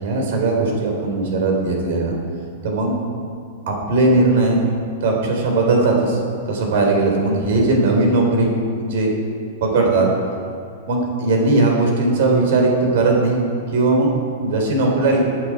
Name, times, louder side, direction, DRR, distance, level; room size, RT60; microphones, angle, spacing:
voice 1, 0.0-2.1 2.6-3.0 3.7-4.6 5.0-6.2 6.5-9.1 9.6-10.1 10.9-13.4 13.7-15.3, right 2 dB, 55° right, 0 dB, 3.9 m, -18 dB
19.5 x 9.7 x 4.9 m, 2.2 s
supercardioid pair, 175°, 0 cm